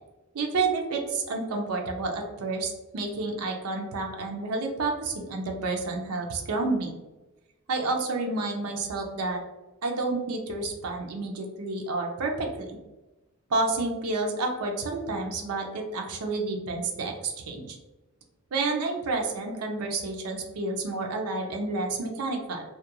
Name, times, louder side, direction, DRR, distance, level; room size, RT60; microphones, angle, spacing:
voice 1, 0.3-6.9 7.7-9.4 9.8-12.8 13.5-17.8 18.5-22.6, right 3 dB, 85° right, 2 dB, 0.5 m, -30 dB
2.3 x 2.2 x 2.8 m, 1.1 s
head